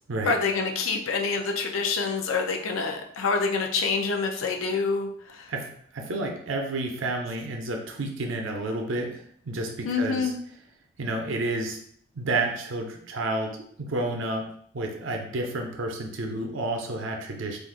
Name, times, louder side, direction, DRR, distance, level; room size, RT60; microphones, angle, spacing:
voice 1, 0.3-5.5 9.8-10.3, left 4 dB, 85° left, 2 dB, 0.5 m, -27 dB
voice 2, 5.5-10.3 11.0-11.8 12.1-14.4 14.7-17.6, right 2 dB, 65° right, 2 dB, 0.6 m, -30 dB
2.5 x 2.4 x 3.7 m, 0.64 s
head